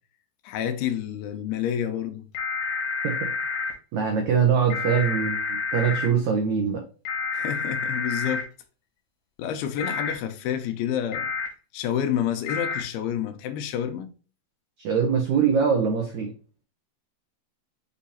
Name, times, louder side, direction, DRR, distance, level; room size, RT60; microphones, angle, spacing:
voice 1, 0.4-2.3 7.3-8.5 9.4-11.3 11.7-14.1, left 9 dB, 85° left, 2.4 m, -29 dB
sound 1, 2.3-3.7 4.7-6.1 7.0-8.4 9.8-10.1 11.1-11.5 12.5-12.8, left 4 dB, 65° left, 1.6 m, -29 dB
voice 2, 3.9-6.8 14.8-16.3, right 6 dB, 85° right, 1.6 m, -23 dB
6.8 x 2.7 x 2.8 m
omnidirectional pair, 4.5 m